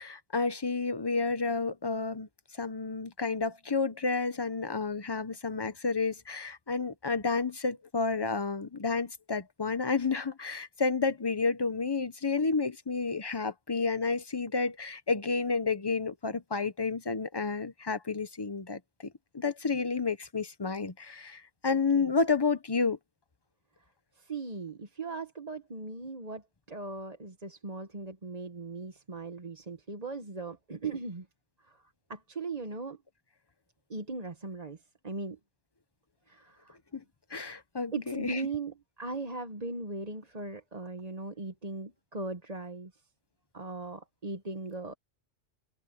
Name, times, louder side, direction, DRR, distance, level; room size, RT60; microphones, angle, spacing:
voice 1, 0.0-2.3 2.6-18.8 19.3-23.0 36.9-37.0 37.3-38.4, left 4 dB, 20° left, 0.9 m, -30 dB
voice 2, 21.7-22.1 24.2-26.4 26.7-31.2 31.7-31.8 32.1-33.0 33.9-34.8 35.0-35.4 36.3-36.8 37.9-42.9 43.5-44.9, right 3 dB, 35° right, 1.4 m, -38 dB
open air
omnidirectional pair, 1.3 m